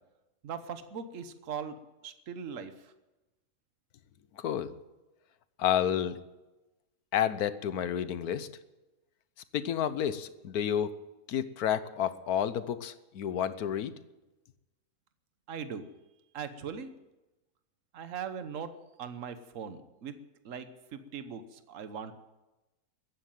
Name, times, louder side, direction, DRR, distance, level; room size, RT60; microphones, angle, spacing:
voice 1, 0.4-1.8 2.0-2.9 15.5-15.9 16.3-16.9 17.9-18.7 19.0-20.1 20.4-22.2, right 7 dB, 60° right, 10 dB, 1.4 m, -40 dB
voice 2, 4.4-4.7 5.6-6.2 7.1-8.5 9.5-10.9 11.3-14.0, left 9 dB, 90° left, 14 dB, 1.3 m, -30 dB
15.0 x 9.7 x 9.2 m, 1.1 s
omnidirectional pair, 1.6 m